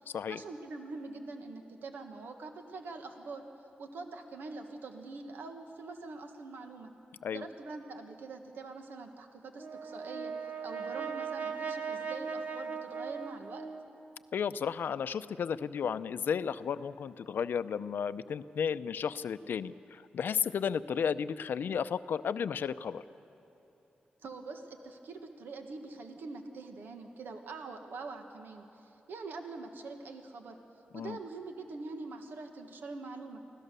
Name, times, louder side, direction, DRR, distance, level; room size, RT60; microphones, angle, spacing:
voice 1, 0.0-3.4 3.8-6.9 7.3-13.7 24.2-30.6 30.9-33.4, right 3 dB, 85° right, 5 dB, 1.5 m, -44 dB
Brass instrument, 9.6-14.0, right 5 dB, 55° right, 1.3 m, -38 dB
voice 2, 14.3-23.0 30.9-31.2, left 7 dB, 75° left, 13 dB, 0.5 m, -33 dB
24.5 x 17.0 x 6.8 m, 3.0 s
cardioid pair, 80°, 3 cm